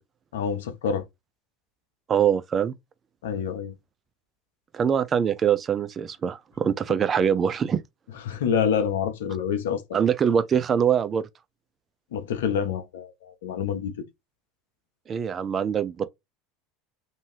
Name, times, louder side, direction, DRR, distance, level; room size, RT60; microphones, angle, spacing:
voice 1, 0.3-1.0 3.2-3.8 8.2-9.8 12.1-14.0, left 7 dB, 75° left, 0.6 m, -27 dB
voice 2, 2.1-2.7 4.7-7.8 9.9-11.2 15.1-16.1, right 8 dB, 35° right, 0.4 m, -23 dB
2.6 x 2.3 x 3.2 m
hypercardioid pair, 75°, 0 cm